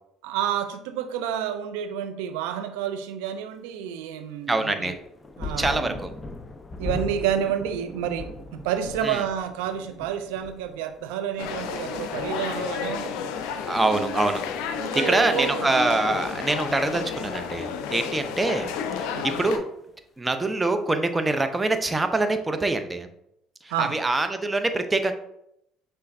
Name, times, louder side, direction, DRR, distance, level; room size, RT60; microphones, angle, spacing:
voice 1, 0.2-5.0 5.4-6.0 6.8-13.2 13.9-14.1 14.8-15.7 19.1-19.3 23.7-24.0, right 9 dB, 80° right, 8 dB, 0.4 m, -29 dB
voice 2, 4.5-4.9 5.6-6.1 9.0-9.2 13.7-14.4 15.1-18.7 18.9-19.6 20.2-23.1 23.6-25.1, right 2 dB, 20° right, 8 dB, 0.6 m, -25 dB
sound 1, 4.8-13.9 14.2-15.1 16.0-16.1, left 3 dB, 20° left, 0.7 m, -39 dB
sound 2, 11.4-19.6, left 7 dB, 75° left, 0.4 m, -32 dB
5.7 x 3.2 x 2.6 m, 0.79 s
hypercardioid pair, 65°, 0 cm